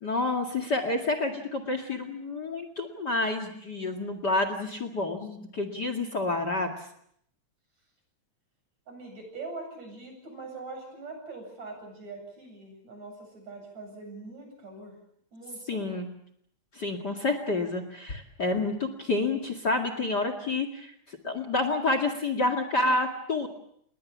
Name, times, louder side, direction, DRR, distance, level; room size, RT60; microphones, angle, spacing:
voice 1, 0.0-6.7 15.7-16.1 16.8-20.9 21.2-23.5, left 2 dB, 35° left, 9 dB, 2.4 m, -29 dB
voice 2, 8.9-15.0 15.3-16.0, right 3 dB, 65° right, 3 dB, 9.4 m, -43 dB
29.5 x 20.5 x 7.4 m, 0.68 s
omnidirectional pair, 3.4 m